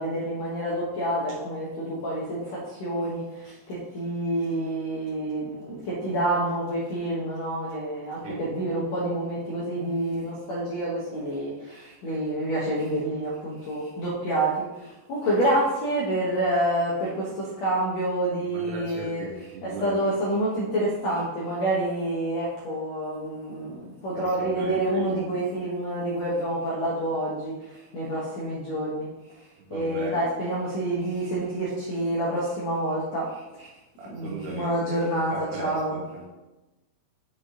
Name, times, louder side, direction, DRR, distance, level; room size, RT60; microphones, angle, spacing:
voice 1, 0.0-29.1 29.7-33.7 34.1-36.0, right 1 dB, 80° left, -6 dB, 1.5 m, -28 dB
voice 2, 18.5-20.1 24.2-25.5 29.7-30.3 34.0-35.0 35.3-36.3, right 3 dB, 80° right, -1 dB, 3.5 m, -38 dB
7.2 x 5.1 x 3.7 m, 1.1 s
omnidirectional pair, 4.9 m